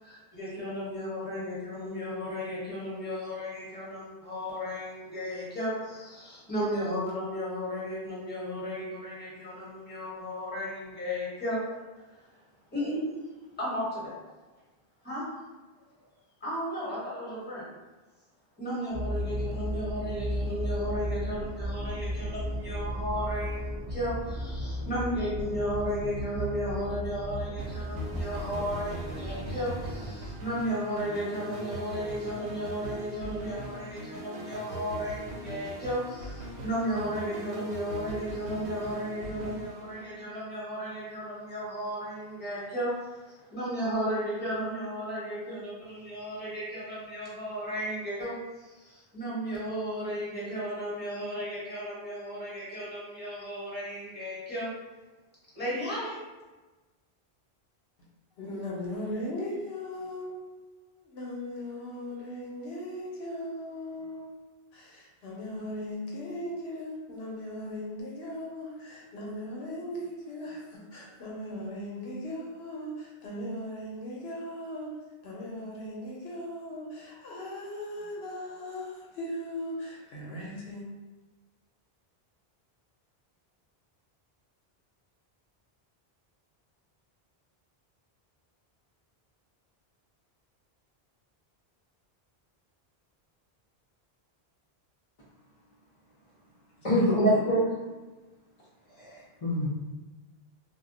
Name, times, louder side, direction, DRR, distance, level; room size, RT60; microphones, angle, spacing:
voice 1, 0.0-12.2 12.7-13.0 13.6-14.1 15.0-15.2 16.4-17.6 18.6-54.7 55.5-56.2, equal, 10° left, -8 dB, 1.1 m, -34 dB
sound 1, 18.9-30.1, equal, 35° right, 0.4 m, -35 dB
sound 2, 27.6-40.5, equal, 85° right, 0.8 m, -41 dB
voice 2, 58.4-64.3 64.7-74.9 75.2-80.9 97.0-97.4, left 1 dB, 85° left, -3 dB, 1.0 m, -38 dB
voice 3, 96.8-97.6 99.0-99.7, equal, 40° left, -8 dB, 0.6 m, -24 dB
2.2 x 2.1 x 3.8 m, 1.2 s
omnidirectional pair, 1.0 m